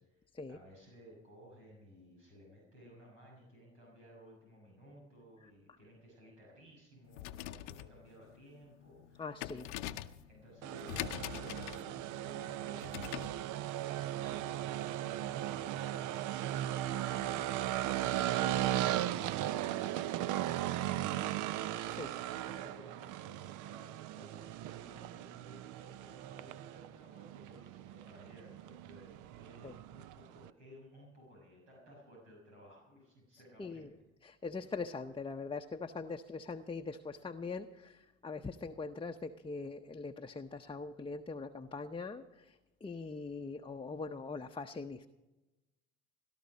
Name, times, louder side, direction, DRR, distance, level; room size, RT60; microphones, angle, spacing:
voice 1, 0.0-9.9 10.3-33.9, equal, 90° right, -3 dB, 6.3 m, -57 dB
sound 1, 7.0-13.4, left 14 dB, 80° left, 0.7 m, -44 dB
voice 2, 9.2-9.6 18.1-18.2 22.0-22.1 29.6-29.7 33.6-33.9 34.2-45.1, left 4 dB, 15° left, 4 dB, 0.7 m, -42 dB
sound 2, 10.6-30.5, right 13 dB, 60° right, 0.6 m, -37 dB
18.0 x 12.5 x 5.3 m, 1.1 s
hypercardioid pair, 65°, 34 cm